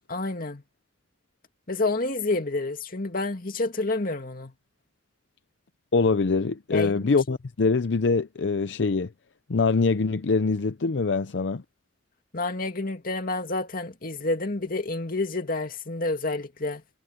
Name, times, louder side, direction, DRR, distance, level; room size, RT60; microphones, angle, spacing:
voice 1, 0.1-0.6 1.7-4.5 6.7-7.1 12.3-16.8, left 2 dB, 50° left, 2.3 m, -29 dB
voice 2, 5.9-9.1 9.5-11.6, left 4 dB, 75° left, 0.6 m, -24 dB
head